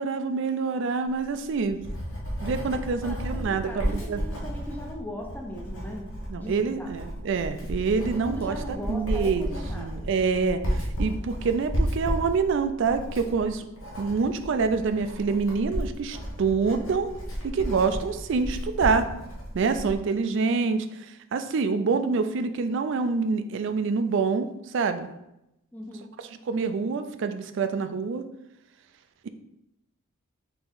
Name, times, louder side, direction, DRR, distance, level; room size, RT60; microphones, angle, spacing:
voice 1, 0.0-1.8 2.4-4.2 6.3-13.6 14.0-17.1 17.4-19.1 19.5-25.1 26.5-28.2 29.2-29.3, right 4 dB, 60° right, 9 dB, 0.3 m, -26 dB
Writing, 1.2-20.0, equal, 75° left, 1.1 m, -33 dB
voice 2, 3.0-6.0 6.4-6.9 8.2-10.1 25.7-26.1, left 1 dB, 10° left, 1 dB, 0.5 m, -39 dB
4.2 x 2.9 x 3.8 m, 0.87 s
head